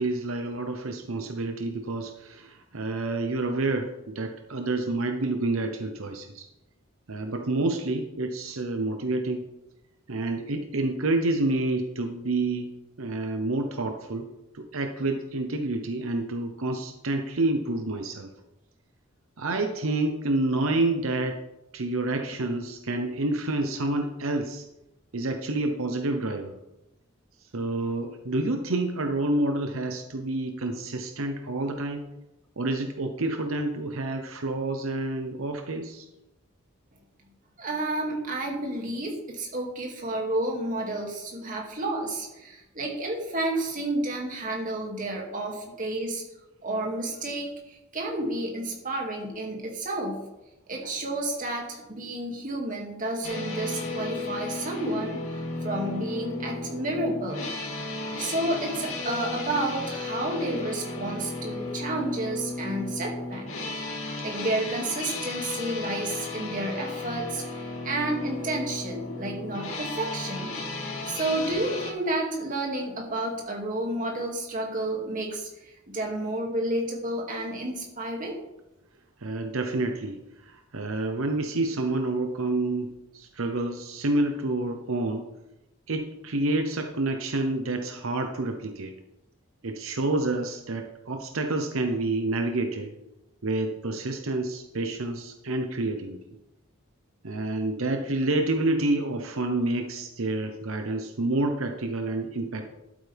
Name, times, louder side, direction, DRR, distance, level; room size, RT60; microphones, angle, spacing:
voice 1, 0.0-6.5 7.1-9.4 10.1-12.7 13.0-14.3 14.5-18.3 19.4-21.4 21.7-24.6 25.1-26.5 27.5-32.0 32.6-36.1 79.2-80.2 80.5-85.2 85.9-88.9 89.6-93.0 93.4-96.2 97.2-102.7, right 2 dB, 85° right, 5 dB, 0.9 m, -28 dB
voice 2, 37.6-46.2 46.6-50.2 50.7-57.5 57.9-63.5 63.9-70.5 71.1-78.3, right 2 dB, 40° right, 0 dB, 2.4 m, -31 dB
sound 1, 53.2-71.9, left 3 dB, 90° left, 2.6 m, -34 dB
12.0 x 8.8 x 3.5 m, 0.94 s
head